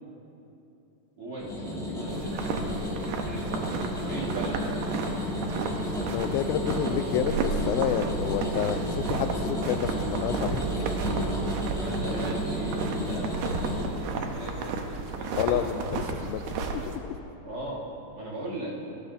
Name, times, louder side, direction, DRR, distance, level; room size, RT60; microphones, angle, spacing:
voice 1, 1.2-2.6 3.1-3.7 4.0-4.8 11.8-14.8 15.1-15.7 17.4-17.9 18.1-18.8, right 1 dB, 45° right, -5 dB, 2.4 m, -38 dB
sound 1, 1.4-13.8, left 1 dB, ahead, 2.4 m, -32 dB
sound 2, 2.1-17.0, right 4 dB, 75° right, 1.8 m, -33 dB
voice 2, 6.1-10.6 15.4-16.4 16.7-17.1, left 10 dB, 85° left, 11 dB, 2.4 m, -29 dB
20.0 x 16.0 x 2.7 m, 2.9 s
omnidirectional pair, 4.2 m